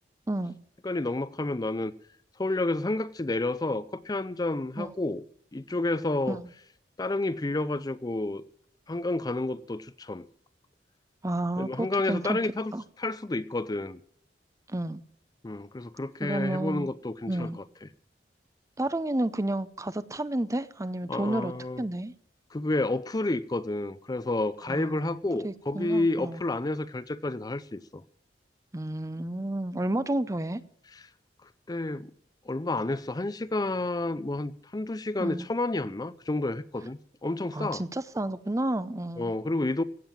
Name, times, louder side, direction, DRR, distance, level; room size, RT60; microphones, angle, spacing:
voice 1, 0.8-1.9 2.4-5.2 5.5-6.4 7.0-8.4 8.9-10.2 11.6-12.7 13.0-14.0 15.4-17.9 21.1-21.8 22.5-28.0 30.9-31.0 31.7-32.1 32.5-37.8 39.2-39.8, left 2 dB, 20° left, 0.5 m, -30 dB
voice 2, 11.2-12.4 12.7-12.8 14.7-15.0 16.2-16.9 17.3-17.6 18.8-21.5 21.8-22.1 24.7-25.2 25.4-26.4 28.7-30.6 35.2-35.5 37.5-39.3, right 1 dB, 20° right, 0.6 m, -31 dB
16.0 x 7.6 x 8.8 m
head